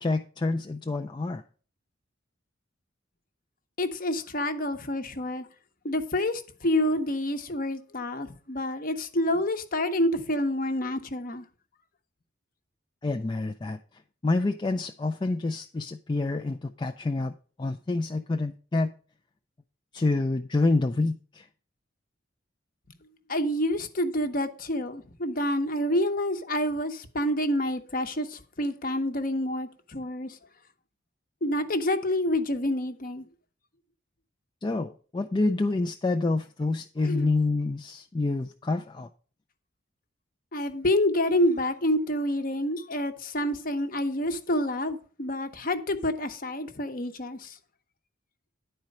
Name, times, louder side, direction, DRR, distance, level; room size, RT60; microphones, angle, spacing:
voice 1, 0.0-1.4 13.0-13.8 14.2-17.3 17.6-18.9 19.9-21.5 34.6-39.1, left 3 dB, 25° left, 0.3 m, -27 dB
voice 2, 3.8-5.5 5.8-11.4 23.3-30.4 31.4-33.3 37.0-37.3 40.5-47.6, left 1 dB, 45° left, 0.9 m, -28 dB
10.5 x 4.4 x 6.4 m
head